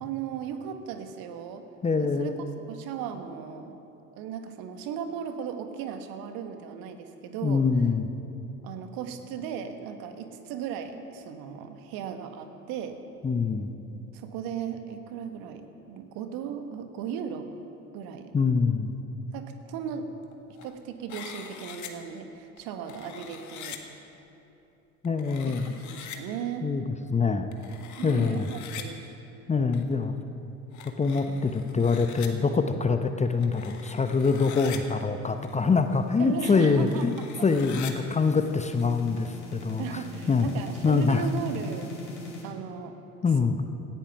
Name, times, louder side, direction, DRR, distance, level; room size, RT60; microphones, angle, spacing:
voice 1, 0.0-1.7 2.0-2.3 2.7-3.7 4.1-7.6 8.6-13.0 14.1-17.5 17.9-18.3 19.3-20.1 20.6-23.8 25.4-26.7 28.0-29.0 36.2-37.0 39.8-41.9 42.4-43.0, right 8 dB, 55° right, 7 dB, 1.5 m, -36 dB
voice 2, 1.8-2.3 7.4-8.1 13.2-13.7 18.3-19.0 25.0-25.7 26.6-26.8 27.1-27.5 28.0-28.5 29.5-30.2 31.0-37.1 37.4-40.0 40.3-40.5 40.8-41.3 43.2-43.6, left 4 dB, 15° left, 8 dB, 0.8 m, -24 dB
sound 1, 20.3-20.8 21.1-21.9 22.6-23.8 25.0-26.2 27.5-28.8 29.7-29.9 30.7-32.3 33.2-34.8 35.4-35.5 36.0-36.1 36.7-37.9 38.8-38.9, left 9 dB, 45° left, 1.6 m, -43 dB
sound 2, 34.9-42.4, left 2 dB, 80° left, 3.3 m, -44 dB
17.5 x 13.0 x 5.9 m, 2.9 s
figure-of-eight pair, 65°, 42 cm